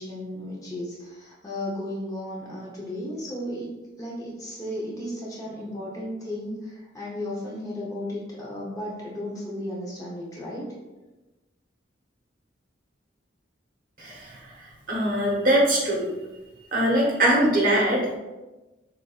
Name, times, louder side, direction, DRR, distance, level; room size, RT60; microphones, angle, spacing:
voice 1, 0.0-3.7 4.0-10.7, left 1 dB, 20° left, -5 dB, 0.8 m, -34 dB
voice 2, 14.0-14.4 14.9-16.1 16.7-18.2, right 1 dB, 45° right, -3 dB, 1.0 m, -22 dB
6.6 x 2.5 x 2.4 m, 1.1 s
head